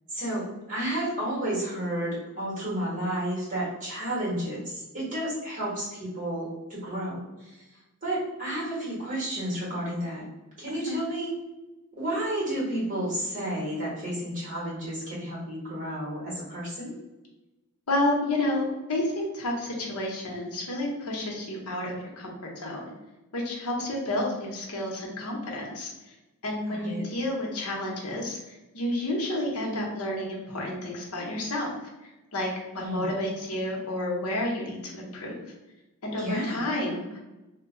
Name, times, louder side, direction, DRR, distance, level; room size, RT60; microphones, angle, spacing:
voice 1, 0.1-7.6 8.0-10.2 10.6-11.3 11.9-16.9 26.7-27.0 32.7-33.1 36.2-36.6, right 1 dB, 35° right, -6 dB, 1.4 m, -31 dB
voice 2, 17.9-22.3 22.6-22.9 23.3-25.9 26.4-28.4 28.7-31.7 32.3-32.5 32.7-35.4 36.0-37.2, left 1 dB, 85° left, -1 dB, 0.8 m, -30 dB
2.8 x 2.2 x 3.7 m, 1.0 s
head